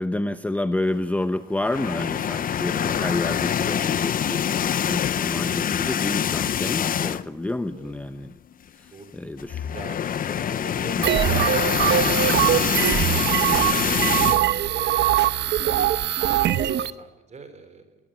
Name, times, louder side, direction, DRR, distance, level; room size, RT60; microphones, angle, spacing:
voice 1, 0.0-8.3 8.7-9.7 11.0-11.1, left 1 dB, 5° left, 10 dB, 0.8 m, -29 dB
sound 1, 1.6-7.4 7.8-8.0 8.2-8.3 9.4-14.4, left 9 dB, 45° left, 0.9 m, -25 dB
voice 2, 8.9-9.3 9.7-13.4 13.8-15.0 15.4-15.9 16.2-18.0, right 4 dB, 35° right, 11 dB, 4.1 m, -43 dB
sound 2, 11.0-16.9, right 12 dB, 60° right, 1.0 m, -22 dB
22.0 x 20.0 x 9.2 m, 0.99 s
cardioid pair, 145°, 20 cm